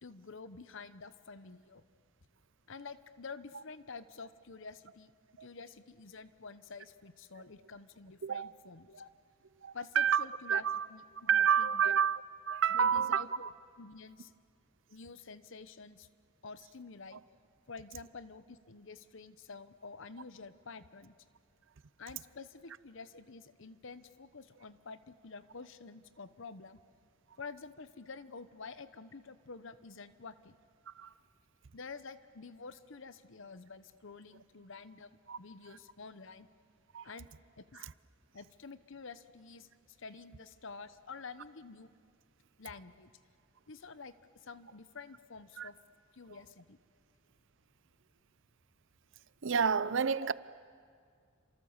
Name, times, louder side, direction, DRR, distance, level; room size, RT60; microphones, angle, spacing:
voice 1, 0.0-1.8 2.7-5.1 5.4-9.1 9.7-11.9 12.7-13.5 13.8-14.3 14.9-16.1 16.4-17.2 17.7-21.1 22.0-26.8 27.4-30.6 31.7-36.5 37.0-37.3 37.6-37.8 38.3-41.9 42.6-43.1 43.7-45.8 46.1-46.8 50.2-50.3, left 4 dB, 65° left, 0.9 m, -49 dB
voice 2, 8.2-8.5 9.6-10.8 11.3-13.5 30.9-31.1 35.3-35.4 36.9-37.1 37.7-37.9 45.6-45.7 46.3-46.4 49.4-50.3, right 7 dB, 65° right, 0.6 m, -30 dB
29.0 x 26.5 x 7.3 m
head